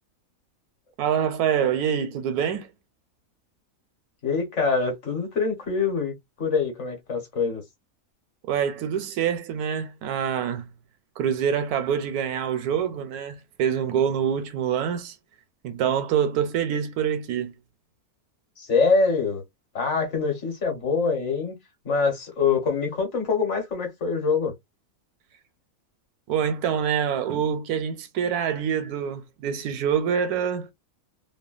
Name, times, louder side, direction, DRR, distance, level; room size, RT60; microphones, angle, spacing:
voice 1, 1.0-2.7 8.5-10.7 11.2-15.2 15.6-17.5 26.3-30.7, right 8 dB, 85° right, 1.1 m, -25 dB
voice 2, 4.2-7.6 18.6-19.4 19.7-21.5 21.8-24.5, left 4 dB, 55° left, 1.3 m, -24 dB
3.0 x 2.2 x 2.3 m
omnidirectional pair, 1.6 m